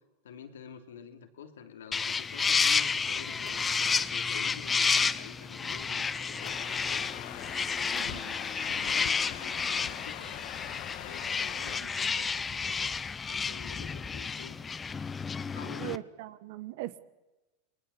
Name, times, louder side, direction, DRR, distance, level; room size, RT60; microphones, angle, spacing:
voice 1, 0.2-7.0 7.7-8.3 8.6-10.4 11.0-14.6 15.5-16.1, left 7 dB, 85° left, 6 dB, 3.0 m, -48 dB
sound 1, 1.9-16.0, left 5 dB, 20° left, 0.9 m, -31 dB
sound 2, 3.1-9.3, left 8 dB, 40° left, 2.8 m, -52 dB
sound 3, 6.4-11.8, left 15 dB, 60° left, 1.6 m, -42 dB
voice 2, 11.8-12.2 15.8-17.0, right 16 dB, 65° right, 15 dB, 1.5 m, -41 dB
28.5 x 20.5 x 7.2 m, 1.1 s
hypercardioid pair, 105°, 0 cm